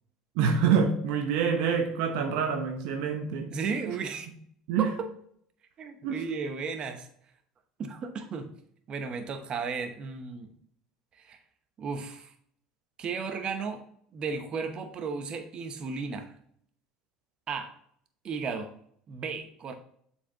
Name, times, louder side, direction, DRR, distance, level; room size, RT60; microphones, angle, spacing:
voice 1, 0.4-3.5 3.8-4.0 4.7-4.9 6.0-6.2, right 6 dB, 70° right, 5 dB, 0.8 m, -26 dB
voice 2, 3.5-4.3 4.8-5.1 5.8-7.1 7.8-8.5 8.9-10.5 11.1-11.4 11.8-12.3 13.0-13.8 14.1-16.3 17.5-17.7 18.2-18.7 19.1-19.7, right 5 dB, 40° right, 7 dB, 1.0 m, -34 dB
7.1 x 4.6 x 3.7 m, 0.65 s
hypercardioid pair, 75°, 2 cm